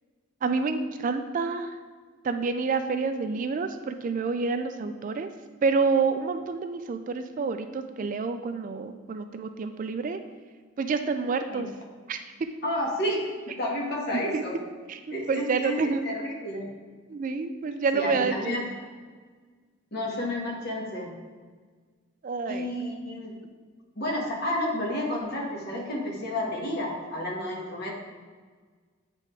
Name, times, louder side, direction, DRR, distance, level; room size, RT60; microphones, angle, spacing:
voice 1, 0.4-1.7 2.2-5.3 5.6-10.2 10.8-11.7 12.1-12.2 14.3-14.4 14.9-15.0 15.3-16.0 17.1-18.6 22.2-22.7, right 4 dB, 40° right, 9 dB, 0.3 m, -28 dB
voice 2, 12.6-14.6 15.1-16.7 17.9-18.7 19.9-21.1 22.5-23.3 23.9-27.9, left 1 dB, 50° left, -2 dB, 1.4 m, -31 dB
8.3 x 3.5 x 4.5 m, 1.5 s
head